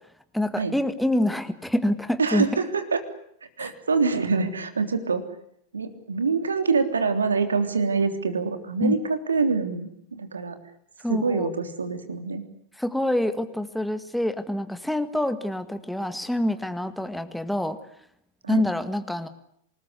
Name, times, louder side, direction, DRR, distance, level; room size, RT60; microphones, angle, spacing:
voice 1, 0.3-2.5 3.6-3.7 8.8-9.0 11.0-11.5 12.8-17.8 18.5-19.3, left 1 dB, ahead, 9 dB, 1.9 m, -26 dB
voice 2, 2.2-3.0 3.6-5.2 5.7-10.6 11.1-12.4 18.4-18.7, right 4 dB, 75° right, 8 dB, 3.3 m, -25 dB
27.0 x 20.0 x 8.1 m, 0.70 s
figure-of-eight pair, 90°, 0 cm